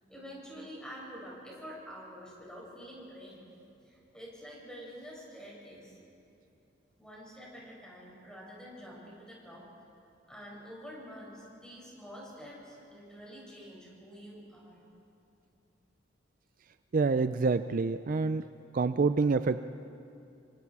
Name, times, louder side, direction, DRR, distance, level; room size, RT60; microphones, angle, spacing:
voice 1, 0.0-3.4 3.8-6.0 7.0-9.7 10.3-14.8, equal, 5° left, -5 dB, 6.8 m, -47 dB
voice 2, 16.9-18.4 18.7-19.6, right 4 dB, 45° right, 12 dB, 0.4 m, -27 dB
27.5 x 25.5 x 4.8 m, 2.7 s
head